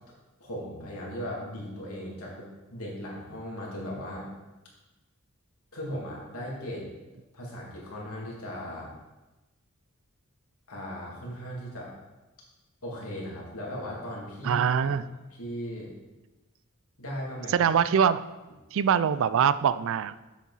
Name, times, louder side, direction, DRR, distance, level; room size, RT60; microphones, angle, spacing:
voice 1, 0.4-4.3 5.7-6.9 7.3-8.9 10.7-11.9 12.8-14.9 15.3-15.9 17.0-17.7, equal, 75° left, -3 dB, 2.6 m, -37 dB
voice 2, 14.4-15.0 17.5-18.2 18.7-20.2, right 7 dB, 65° right, 15 dB, 0.4 m, -23 dB
8.4 x 7.3 x 4.1 m, 1.1 s
head